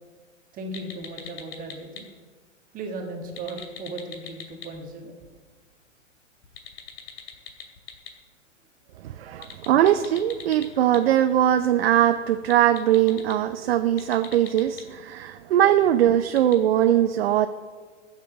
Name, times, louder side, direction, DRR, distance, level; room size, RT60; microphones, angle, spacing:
voice 1, 0.5-2.1 2.7-5.1, right 2 dB, 20° right, 3 dB, 1.5 m, -36 dB
sound 1, 0.7-2.0 3.2-4.7 6.4-8.1 9.3-11.0 12.4-13.3 13.9-14.8 16.3-16.5, left 10 dB, 50° left, 2.5 m, -40 dB
voice 2, 9.0-17.5, right 11 dB, 50° right, 10 dB, 0.7 m, -21 dB
14.0 x 7.3 x 7.3 m, 1.5 s
figure-of-eight pair, 115°, 38 cm